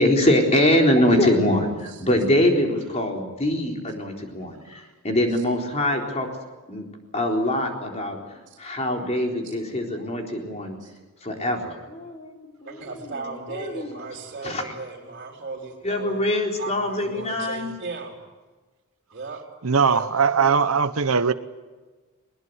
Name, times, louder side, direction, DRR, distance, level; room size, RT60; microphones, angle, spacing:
voice 1, 0.0-6.3 6.7-6.9 7.1-10.8 11.2-14.0 14.4-14.7 15.8-17.7, left 1 dB, 30° left, 2 dB, 4.0 m, -23 dB
voice 2, 12.7-16.2 16.6-18.2 19.1-19.4 19.9-20.6, right 3 dB, 45° right, -1 dB, 3.8 m, -36 dB
voice 3, 19.6-21.3, right 5 dB, 75° right, 12 dB, 0.9 m, -20 dB
21.0 x 20.5 x 9.5 m, 1.3 s
head